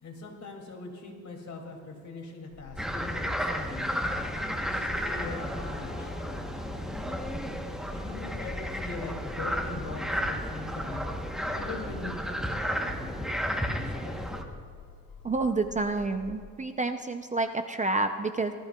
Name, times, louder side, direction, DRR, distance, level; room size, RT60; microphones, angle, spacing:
voice 1, 0.0-4.0 4.6-6.1 7.8-11.1 11.5-13.3 13.6-14.2, left 3 dB, 55° left, 1 dB, 2.5 m, -41 dB
sound 1, 2.5-16.4, left 4 dB, 85° left, 1.4 m, -47 dB
sound 2, 2.8-14.4, equal, ahead, 0.9 m, -33 dB
sound 3, 4.4-9.6, left 2 dB, 15° left, 2.1 m, -50 dB
voice 2, 15.2-18.5, right 3 dB, 20° right, 8 dB, 0.4 m, -29 dB
19.5 x 13.5 x 2.3 m, 2.3 s
cardioid pair, 120°, 34 cm